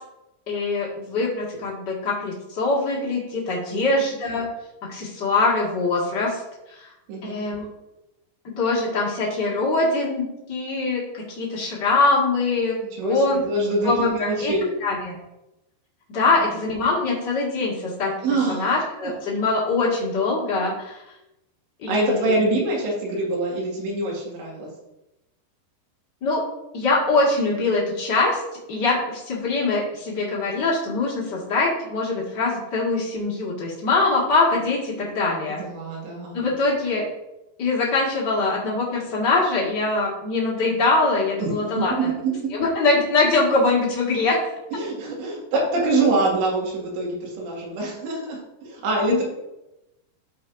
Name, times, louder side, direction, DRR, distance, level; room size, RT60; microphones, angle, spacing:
voice 1, 0.5-4.5 4.8-6.4 6.8-6.9 7.2-7.7 8.6-12.7 13.0-13.4 13.8-15.2 16.1-18.1 18.5-21.0 21.8-22.4 26.2-26.5 26.7-28.4 28.7-35.6 36.3-37.0 37.6-42.1 42.5-44.4 49.1-49.2, left 3 dB, 55° left, -4 dB, 1.2 m, -23 dB
voice 2, 12.8-14.7 18.2-18.7 21.9-24.7 35.5-36.4 41.4-42.5 44.7-49.2, right 2 dB, 80° right, -3 dB, 4.3 m, -25 dB
13.5 x 4.7 x 2.6 m, 0.92 s
omnidirectional pair, 5.1 m